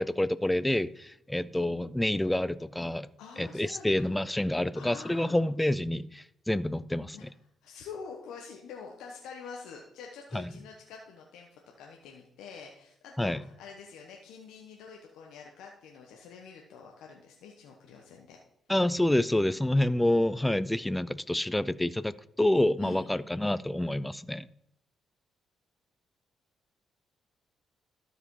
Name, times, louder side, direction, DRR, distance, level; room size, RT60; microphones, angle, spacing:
voice 1, 0.0-3.1 3.4-7.3 10.3-10.5 13.2-13.4 18.7-24.5, left 1 dB, 10° left, 0.4 m, -28 dB
voice 2, 3.2-4.4 4.7-5.4 7.1-7.2 7.6-18.4 22.8-23.1, left 5 dB, 90° left, 1.0 m, -47 dB
12.5 x 4.9 x 4.7 m
cardioid pair, 90°, 0 cm